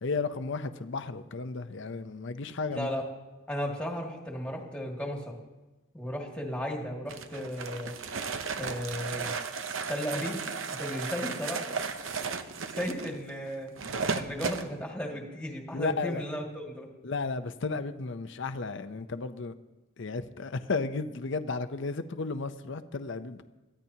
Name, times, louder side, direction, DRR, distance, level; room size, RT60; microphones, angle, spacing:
voice 1, 0.0-2.9 15.7-16.2 17.0-19.5 20.0-23.4, left 4 dB, 60° left, 0.6 m, -33 dB
voice 2, 2.7-3.1 3.5-5.3 5.9-7.9 8.6-9.3 9.9-10.4 10.7-11.8 12.7-13.7 14.1-16.9, equal, 5° left, 2.1 m, -35 dB
sound 1, 7.1-14.7, right 5 dB, 65° right, 0.8 m, -35 dB
22.5 x 15.0 x 2.8 m
head